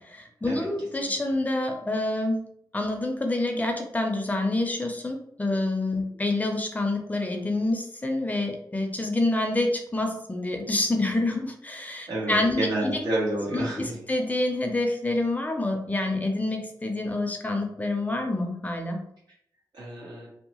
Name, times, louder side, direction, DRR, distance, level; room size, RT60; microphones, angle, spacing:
voice 1, 0.0-2.5 2.7-13.0 13.5-13.7 14.1-19.0, left 2 dB, 20° left, 3 dB, 0.4 m, -27 dB
voice 2, 12.1-14.1 19.7-20.3, right 1 dB, 75° right, -6 dB, 1.1 m, -29 dB
2.7 x 2.1 x 2.9 m, 0.72 s
wide cardioid pair, 80°, 7 cm